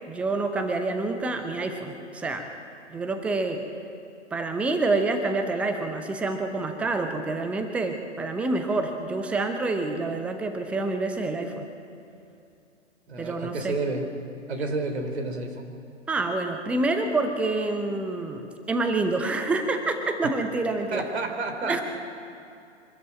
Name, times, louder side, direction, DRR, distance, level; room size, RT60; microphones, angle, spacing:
voice 1, 0.0-2.5 2.9-3.6 4.3-11.7 13.2-13.8 16.1-21.1 21.6-21.8, right 3 dB, 5° right, 6 dB, 0.7 m, -27 dB
voice 2, 13.1-14.0 14.5-15.7 20.9-21.8, right 3 dB, 60° right, 4 dB, 3.3 m, -30 dB
24.0 x 13.0 x 8.8 m, 2.6 s
figure-of-eight pair, 125°, 37 cm